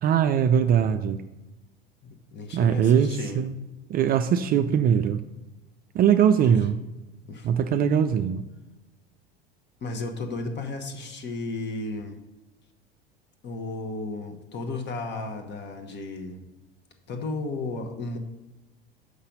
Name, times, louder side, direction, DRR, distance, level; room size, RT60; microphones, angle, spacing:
voice 1, 0.0-1.2 2.5-3.5 3.9-5.2 5.9-6.8 7.4-8.4, right 8 dB, 30° right, 8 dB, 0.4 m, -21 dB
voice 2, 2.0-3.4 6.4-6.6 7.2-7.5 9.8-12.2 13.4-16.4 17.1-18.2, left 3 dB, 35° left, 6 dB, 1.3 m, -34 dB
6.6 x 5.6 x 5.2 m, 1.1 s
figure-of-eight pair, 75°, 29 cm